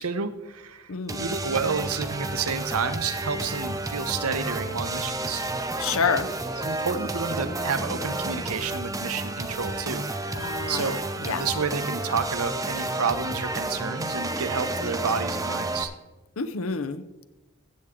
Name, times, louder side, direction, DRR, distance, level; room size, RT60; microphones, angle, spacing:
voice 1, 0.0-5.5 6.6-10.4 10.7-15.9, right 5 dB, 85° right, 9 dB, 0.9 m, -30 dB
voice 2, 0.9-1.3 5.8-6.3 10.3-11.4 16.4-17.0, left 5 dB, 70° left, 13 dB, 0.7 m, -28 dB
sound 1, 1.1-15.8, right 2 dB, 15° right, 0.6 m, -31 dB
15.0 x 8.0 x 3.7 m, 1.1 s
head